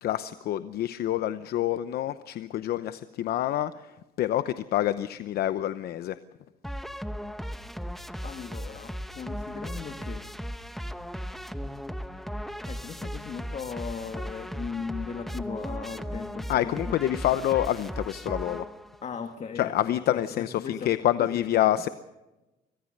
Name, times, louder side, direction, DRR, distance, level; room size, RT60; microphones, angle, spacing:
voice 1, 0.0-6.2 16.5-18.7 19.6-21.9, left 12 dB, 65° left, 13 dB, 0.8 m, -27 dB
sound 1, 6.6-19.0, equal, ahead, 1.0 m, -37 dB
voice 2, 8.2-10.3 12.6-17.0 19.0-20.9 21.2-21.7, left 6 dB, 40° left, 7 dB, 1.7 m, -38 dB
25.5 x 18.0 x 6.6 m, 1.0 s
cardioid pair, 110°, 17 cm